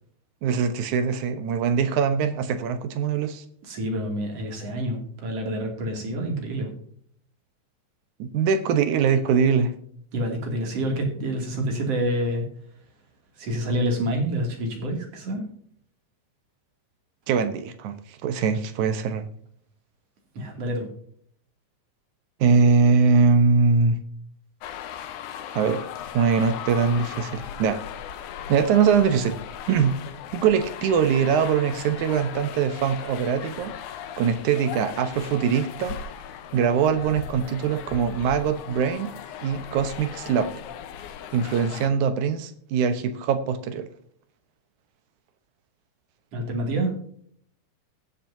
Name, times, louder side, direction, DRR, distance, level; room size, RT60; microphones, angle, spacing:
voice 1, 0.4-3.4 8.2-9.7 17.3-19.3 22.4-24.0 25.5-25.8 26.1-27.8 28.5-29.4 29.7-29.9 30.3-33.7 34.2-36.0 36.5-39.1 39.4-40.5 41.3-43.9, right 6 dB, 75° right, 10 dB, 2.3 m, -22 dB
voice 2, 3.7-6.7 10.1-12.4 13.4-15.4 20.4-20.9 46.3-46.9, right 1 dB, 50° right, 2 dB, 3.4 m, -27 dB
sound 1, 24.6-41.9, left 9 dB, 80° left, 2.3 m, -38 dB
21.5 x 7.4 x 2.7 m, 0.62 s
omnidirectional pair, 3.7 m